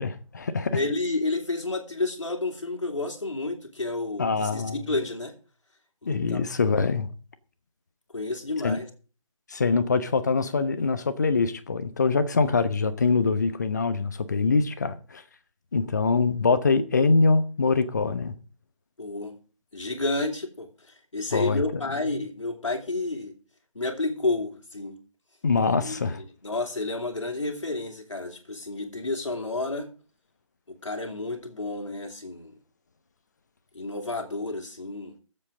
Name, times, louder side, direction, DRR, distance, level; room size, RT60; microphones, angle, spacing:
voice 1, 0.0-0.8 4.2-4.8 6.1-7.1 8.6-8.8 9.5-15.2 15.7-18.3 21.3-21.6 22.1-22.2 25.4-26.2, left 4 dB, 30° left, 1.0 m, -24 dB
voice 2, 0.7-5.3 6.0-6.4 8.1-8.9 19.0-19.4 19.7-23.3 23.7-24.9 25.7-29.9 30.7-32.6 33.7-35.1, left 2 dB, 60° left, 3.1 m, -30 dB
22.5 x 7.9 x 3.8 m
figure-of-eight pair, 155°, 17 cm